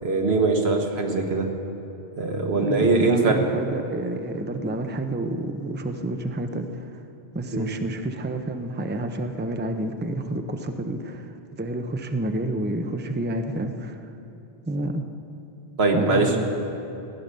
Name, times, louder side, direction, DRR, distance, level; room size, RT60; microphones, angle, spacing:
voice 1, 0.0-1.5 2.2-3.4 7.5-7.6 15.8-16.3, right 3 dB, 85° right, 3 dB, 1.6 m, -22 dB
voice 2, 2.6-7.0 7.3-14.1 14.7-15.0 15.9-16.4, right 1 dB, 10° right, 6 dB, 0.6 m, -29 dB
15.5 x 9.9 x 6.7 m, 2.9 s
omnidirectional pair, 1.0 m